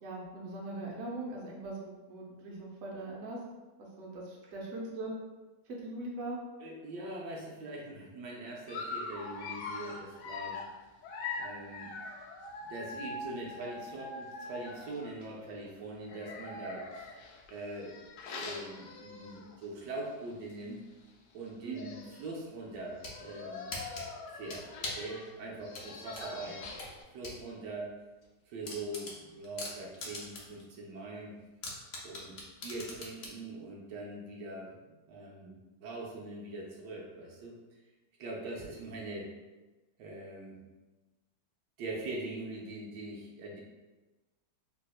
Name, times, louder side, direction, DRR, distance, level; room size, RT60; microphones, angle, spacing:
voice 1, 0.0-3.4 3.8-5.1 5.8-6.4 21.6-21.9 26.2-26.5, right 2 dB, 60° right, -3 dB, 1.0 m, -41 dB
voice 2, 6.6-10.6 11.4-11.9 12.6-17.2 17.5-18.0 18.3-20.8 21.3-23.7 24.3-26.6 27.1-27.9 28.5-31.3 32.0-32.3 32.6-37.6 38.2-39.3 40.0-40.6 41.8-43.6, right 2 dB, 80° right, -2 dB, 1.3 m, -42 dB
Dog, 8.7-15.3 16.0-19.6 20.1-20.2 20.5-20.6 21.5-21.6 21.7-22.3 22.9-27.0, left 3 dB, 80° left, 1.2 m, -43 dB
sound 1, 22.7-23.2 23.7-25.1 25.7-27.4 27.8-27.9 28.2-28.3 28.6-30.6 31.0-31.1 31.6-33.4, left 2 dB, 60° left, 1.0 m, -41 dB
3.4 x 2.9 x 2.3 m, 1.2 s
omnidirectional pair, 1.9 m